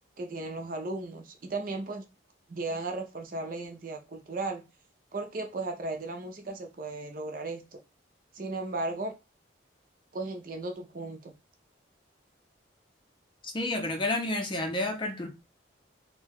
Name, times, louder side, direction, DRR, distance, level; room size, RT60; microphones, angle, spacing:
voice 1, 0.2-2.0 2.5-4.6 5.1-7.8 8.3-9.1 10.1-11.3, right 2 dB, 45° right, 0.5 m, -35 dB
voice 2, 13.4-15.3, left 2 dB, 25° left, 0.5 m, -30 dB
2.7 x 2.2 x 3.4 m
head